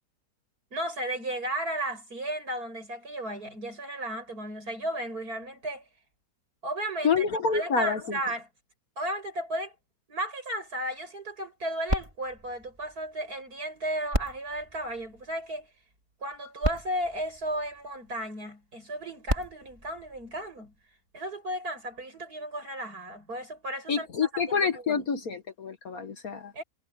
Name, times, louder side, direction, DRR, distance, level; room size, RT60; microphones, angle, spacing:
voice 1, 0.7-5.8 6.6-8.5 9.0-9.7 10.1-15.7 16.2-20.7 21.1-25.0 26.5-26.6, right 1 dB, 65° right, 7.9 m, -34 dB
voice 2, 7.0-8.2 23.9-26.5, left 5 dB, 60° left, 2.0 m, -27 dB
sound 1, 11.9-13.5 14.1-15.7 16.3-16.4 16.6-18.2 19.0-20.8 21.6-21.7, right 1 dB, 20° right, 3.7 m, -35 dB
omnidirectional pair, 1.7 m